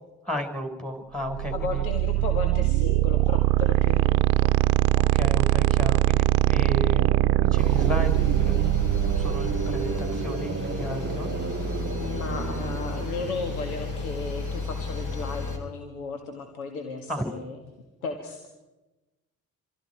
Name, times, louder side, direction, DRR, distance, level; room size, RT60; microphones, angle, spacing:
voice 1, 0.2-1.8 2.2-2.3 4.9-8.6 9.1-11.3 17.1-17.2, equal, ahead, 5 dB, 5.0 m, -33 dB
sound 1, 1.3-10.1, right 16 dB, 75° right, 0.8 m, -22 dB
voice 2, 1.5-4.5 11.6-17.6 18.0-18.5, left 4 dB, 85° left, 6 dB, 1.8 m, -35 dB
sound 2, 6.5-14.1, right 8 dB, 30° right, 0.8 m, -34 dB
sound 3, 7.6-15.6, left 4 dB, 45° left, 6.0 m, -32 dB
27.0 x 25.5 x 4.7 m, 1.1 s
hypercardioid pair, 50°, 42 cm